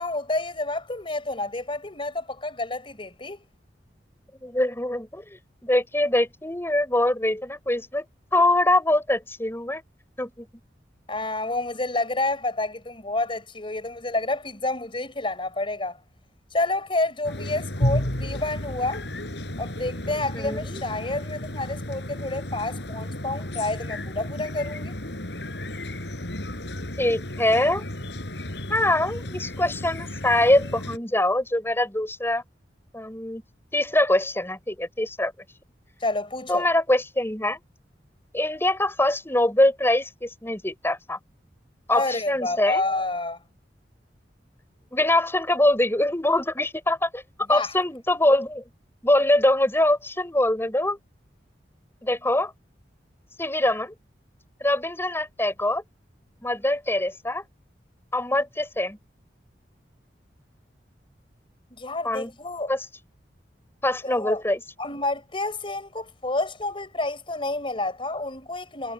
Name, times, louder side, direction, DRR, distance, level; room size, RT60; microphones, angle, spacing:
voice 1, 0.0-3.4 11.1-16.0 16.5-19.0 19.6-24.9 36.0-36.7 41.9-43.4 47.5-47.7 61.7-62.7 64.0-64.4 64.8-68.9, left 2 dB, 30° left, 4.8 m, -29 dB
voice 2, 4.4-8.0 8.3-9.8 10.2-10.4 20.3-20.8 27.0-27.8 28.7-32.4 32.9-33.4 33.7-35.3 36.5-37.6 38.3-41.2 41.9-42.8 44.9-47.2 47.5-48.6 49.0-51.0 52.0-52.5 53.4-53.9 54.6-55.8 56.4-57.4 58.1-59.0 62.0-62.3 62.7-62.8 63.8-64.6, left 1 dB, 15° left, 4.8 m, -23 dB
sound 1, 17.2-31.0, left 1 dB, 75° left, 4.7 m, -32 dB
head